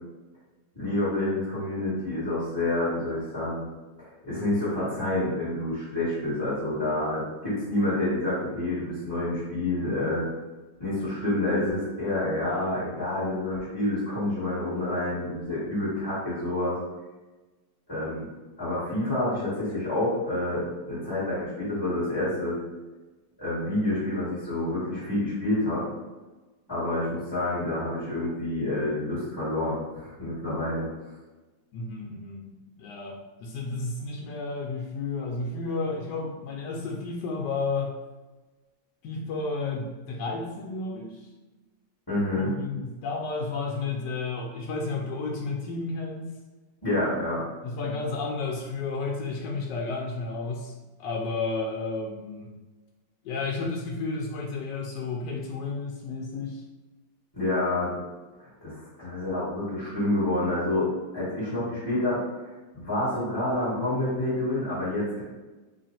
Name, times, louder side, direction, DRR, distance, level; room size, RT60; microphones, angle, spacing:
voice 1, 0.7-3.6 4.0-10.2 10.8-16.8 17.9-18.3 18.6-22.6 23.4-25.9 26.7-30.9 42.1-42.6 46.8-47.4 57.3-57.9 58.4-65.2, left 1 dB, 15° left, -13 dB, 1.2 m, -28 dB
voice 2, 31.7-32.4 32.8-37.9 39.0-41.2 42.3-46.3 47.6-50.7 51.0-52.5 53.2-56.6, left 3 dB, 75° left, -1 dB, 1.1 m, -32 dB
3.1 x 2.5 x 4.2 m, 1.2 s
omnidirectional pair, 2.0 m